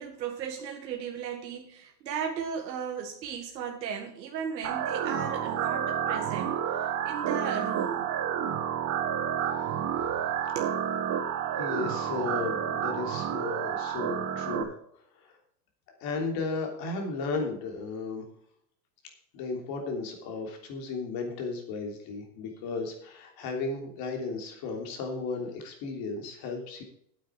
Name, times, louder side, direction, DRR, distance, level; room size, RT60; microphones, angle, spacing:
voice 1, 0.0-8.1 10.6-10.8, right 7 dB, 90° right, 1.7 m, -36 dB
sound 1, 4.6-14.6, right 9 dB, 35° right, 1.4 m, -30 dB
voice 2, 11.6-14.7 15.2-15.4 16.0-18.3 19.3-26.8, left 4 dB, 45° left, 3.3 m, -34 dB
8.9 x 8.9 x 4.8 m
supercardioid pair, 130°, 49 cm